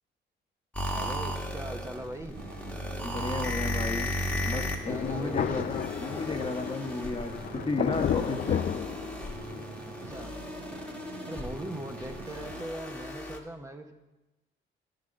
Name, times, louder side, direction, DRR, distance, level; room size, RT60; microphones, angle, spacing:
sound 1, 0.7-13.4, left 1 dB, 5° left, 1.3 m, -36 dB
voice 1, 0.9-2.4 4.9-5.6 10.0-10.3 11.3-13.9, right 1 dB, 15° right, 3 dB, 0.8 m, -40 dB
sound 2, 2.3-12.6, right 7 dB, 50° right, 0.6 m, -47 dB
voice 2, 3.0-4.1 4.4-8.6, left 2 dB, 25° left, 4 dB, 1.1 m, -33 dB
Thunder, 4.8-9.6, left 9 dB, 45° left, 0.4 m, -33 dB
10.5 x 4.0 x 7.5 m, 1.0 s
cardioid pair, 90°, 20 cm